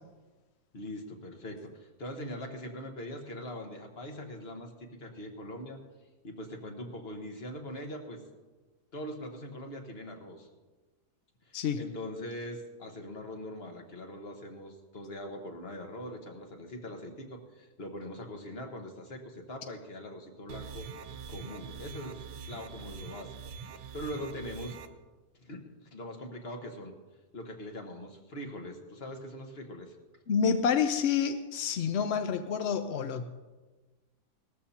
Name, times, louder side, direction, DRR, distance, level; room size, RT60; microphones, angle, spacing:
voice 1, 0.7-5.8 6.2-8.2 8.9-10.5 11.5-20.9 21.3-23.4 23.6-24.8 25.4-26.9 27.3-29.9, left 1 dB, 40° left, 3 dB, 1.5 m, -42 dB
sound 1, 20.5-24.9, right 6 dB, 75° right, 1.4 m, -44 dB
voice 2, 30.3-33.3, left 6 dB, 65° left, 8 dB, 0.6 m, -28 dB
18.5 x 13.5 x 2.9 m, 1.2 s
omnidirectional pair, 1.8 m